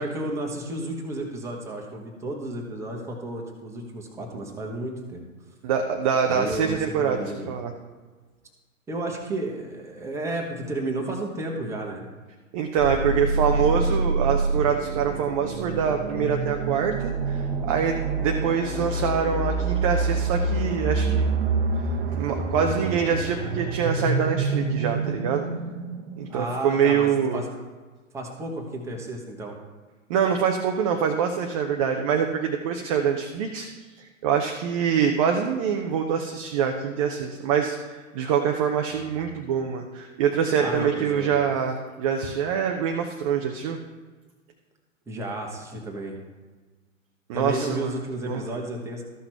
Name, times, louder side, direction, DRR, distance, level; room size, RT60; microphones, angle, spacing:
voice 1, 0.0-5.2 6.3-7.5 8.9-12.0 26.3-27.5 28.1-29.6 38.9-39.1 40.6-41.4 45.1-46.1 47.3-49.0, right 1 dB, 5° right, -1 dB, 1.3 m, -32 dB
voice 2, 5.6-7.7 12.5-21.3 22.1-25.4 26.2-27.4 30.1-33.7 34.2-43.8 47.3-48.0 48.2-48.4, right 7 dB, 25° right, 3 dB, 0.6 m, -25 dB
sound 1, 12.8-26.5, right 3 dB, 45° right, 1.0 m, -27 dB
13.5 x 5.8 x 4.5 m, 1.3 s
figure-of-eight pair, 115°, 40 cm